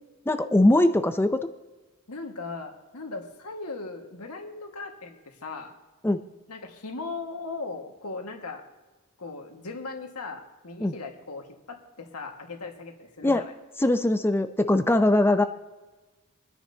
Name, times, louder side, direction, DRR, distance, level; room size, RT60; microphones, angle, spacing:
voice 1, 0.3-1.4 6.0-6.2 10.8-10.9 13.2-13.4 13.8-15.4, left 1 dB, 10° left, 9 dB, 0.5 m, -21 dB
voice 2, 2.1-5.7 6.5-8.7 9.2-13.5, left 3 dB, 85° left, 2 dB, 1.8 m, -38 dB
26.5 x 10.0 x 2.8 m, 1.2 s
head